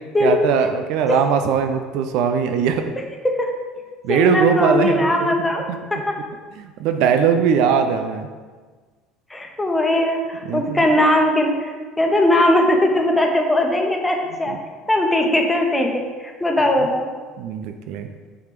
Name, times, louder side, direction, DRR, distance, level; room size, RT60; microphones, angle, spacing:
voice 1, 0.2-2.8 4.0-5.3 5.7-5.8 6.6-8.3 10.4-10.8 14.5-14.6 17.4-18.1, right 7 dB, 60° right, 7 dB, 0.5 m, -20 dB
voice 2, 4.1-5.6 5.9-6.2 9.3-14.6 14.9-17.1, left 1 dB, 15° left, 2 dB, 1.3 m, -19 dB
6.4 x 4.9 x 4.9 m, 1.4 s
figure-of-eight pair, 65°, 0 cm